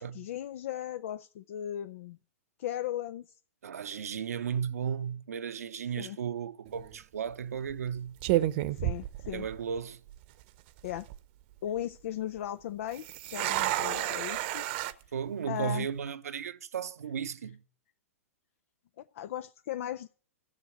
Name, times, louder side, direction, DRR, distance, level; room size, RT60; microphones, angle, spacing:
voice 1, 0.0-2.2 2.6-3.3 6.0-6.2 8.7-9.5 10.8-11.1 11.6-14.6 15.5-15.9 19.0-20.1, left 11 dB, 60° left, 0.5 m, -37 dB
voice 2, 3.6-8.2 9.3-10.0 15.1-17.6, right 7 dB, 80° right, 0.8 m, -35 dB
sound 1, 6.7-7.0 7.7-7.9 8.2-9.8 10.1-10.2 10.8-11.2 12.9-14.9, right 15 dB, 45° right, 0.8 m, -31 dB
13.0 x 7.4 x 7.8 m
hypercardioid pair, 120°, 8 cm